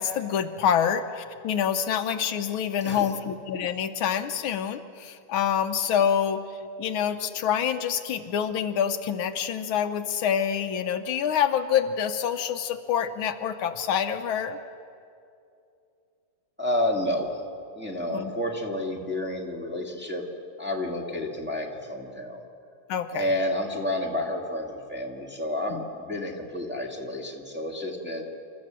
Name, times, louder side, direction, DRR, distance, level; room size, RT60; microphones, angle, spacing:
voice 1, 0.0-6.4 6.8-14.6 18.1-18.3 22.9-23.3 25.7-25.8, left 8 dB, 75° left, 8 dB, 1.6 m, -26 dB
voice 2, 16.6-17.4 17.8-20.2 20.6-22.4 23.1-28.2, left 1 dB, 5° right, -1 dB, 1.8 m, -30 dB
28.0 x 14.0 x 7.5 m, 2.6 s
omnidirectional pair, 2.3 m